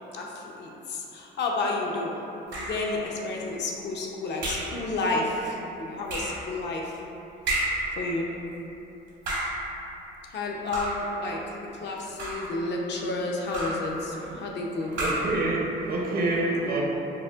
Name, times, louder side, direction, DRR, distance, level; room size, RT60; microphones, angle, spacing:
voice 1, 0.1-2.2 2.5-7.0 8.0-8.3 10.3-14.9, left 2 dB, 60° left, -1 dB, 0.5 m, -31 dB
sound 1, 2.5-2.9 4.4-4.8 6.1-6.4 7.5-7.9 9.1-9.6 10.7-11.1 12.0-12.6 13.5-13.9 14.9-15.4, right 1 dB, 70° right, 1.0 m, -30 dB
voice 2, 15.0-16.8, right 2 dB, 50° right, -2 dB, 0.6 m, -27 dB
5.1 x 2.1 x 2.3 m, 3.0 s
cardioid pair, 90°, 20 cm